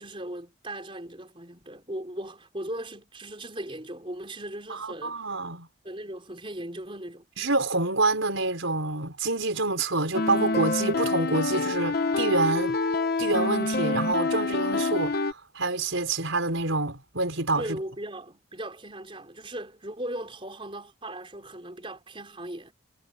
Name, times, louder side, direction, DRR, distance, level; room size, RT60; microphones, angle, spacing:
voice 1, 0.0-5.2 5.8-7.3 17.6-22.7, right 1 dB, 25° right, 4.7 m, -38 dB
voice 2, 4.7-5.7 7.4-12.8 13.2-17.8, right 2 dB, 70° right, 4.7 m, -27 dB
sound 1, 10.1-15.3, left 3 dB, 50° left, 1.2 m, -27 dB
head